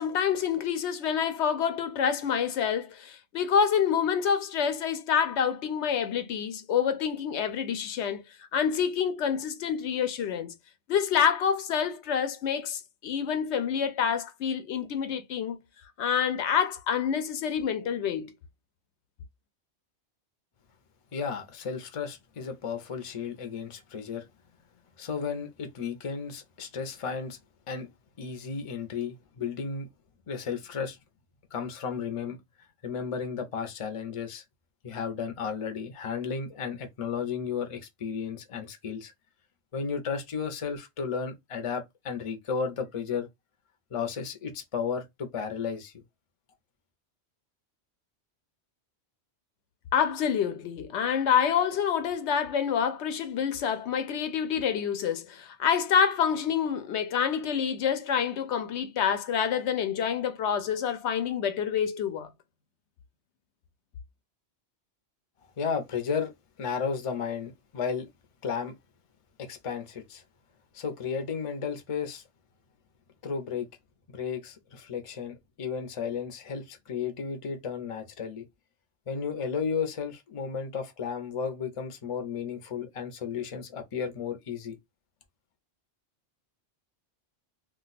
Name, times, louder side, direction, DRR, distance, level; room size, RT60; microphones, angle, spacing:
voice 1, 0.0-8.2 8.5-10.5 10.9-15.6 16.0-18.3 49.9-62.3, left 7 dB, 80° left, 0.9 m, -27 dB
voice 2, 21.1-24.2 25.0-27.4 27.7-27.9 28.2-29.9 30.3-31.0 31.5-32.4 32.8-34.4 34.8-39.1 39.7-43.3 43.9-45.9 65.6-66.3 66.6-68.1 68.4-68.7 69.4-70.2 70.7-72.2 73.2-73.7 74.1-78.5 79.1-84.8, left 6 dB, 40° left, 0.5 m, -33 dB
2.4 x 2.2 x 3.9 m
omnidirectional pair, 1.1 m